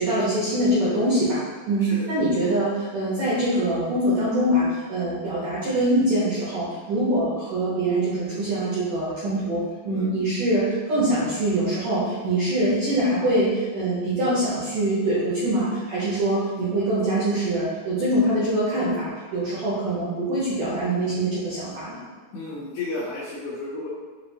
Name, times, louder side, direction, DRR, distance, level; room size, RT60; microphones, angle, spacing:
voice 1, 0.0-1.4 1.7-22.0, right 1 dB, 75° right, -10 dB, 1.9 m, -24 dB
voice 2, 22.3-23.9, left 3 dB, 90° left, -5 dB, 2.1 m, -32 dB
6.8 x 2.6 x 2.7 m, 1.5 s
omnidirectional pair, 5.2 m